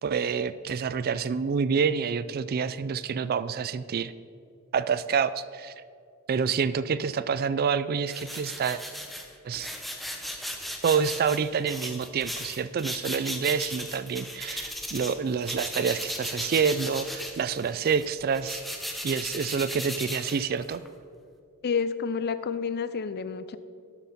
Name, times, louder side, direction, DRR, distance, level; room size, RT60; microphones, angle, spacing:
voice 1, 0.0-4.1 4.7-5.7 6.3-8.8 9.4-9.7 10.8-18.6 19.0-20.8, right 6 dB, 45° right, 15 dB, 0.3 m, -27 dB
sound 1, 8.1-15.2 15.4-20.9, equal, ahead, 0.9 m, -36 dB
voice 2, 21.6-23.6, left 5 dB, 50° left, 14 dB, 0.5 m, -29 dB
12.0 x 8.0 x 4.2 m, 2.3 s
head